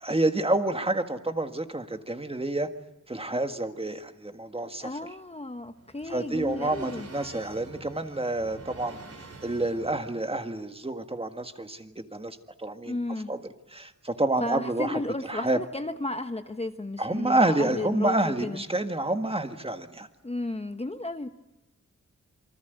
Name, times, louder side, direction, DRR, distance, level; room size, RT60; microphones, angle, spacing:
voice 1, 0.0-2.7 3.1-4.9 6.1-9.0 9.4-12.9 13.3-13.4 13.7-15.0 15.3-15.6 17.0-20.1, right 2 dB, 20° right, 1.7 m, -28 dB
voice 2, 4.8-7.1 12.9-13.3 14.4-18.6 20.2-21.3, left 2 dB, 20° left, 1.0 m, -33 dB
sound 1, 5.3-10.4, right 3 dB, 55° right, 4.2 m, -47 dB
27.5 x 24.5 x 8.1 m
wide cardioid pair, 135°, 30 cm